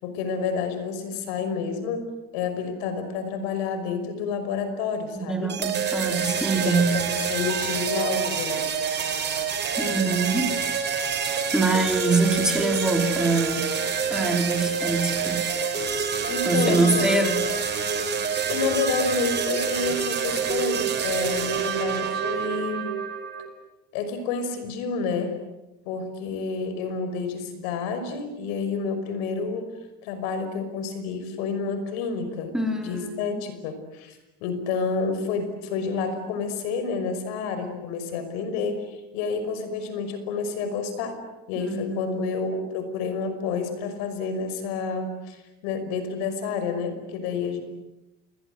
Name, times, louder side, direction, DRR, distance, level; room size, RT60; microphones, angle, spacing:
voice 1, 0.0-5.6 6.1-8.7 16.3-17.2 18.5-22.9 23.9-25.4 25.9-29.8 30.0-32.5 32.8-41.2 41.5-47.6, left 5 dB, 85° left, 9 dB, 5.6 m, -29 dB
voice 2, 5.3-7.0 9.8-10.5 11.2-13.7 14.1-15.5 16.4-17.4 32.5-33.4 41.6-42.2, right 3 dB, ahead, 2 dB, 4.3 m, -24 dB
sound 1, 5.5-23.5, right 6 dB, 35° right, 5.4 m, -27 dB
29.5 x 24.0 x 8.0 m, 0.98 s
cardioid pair, 125°, 30 cm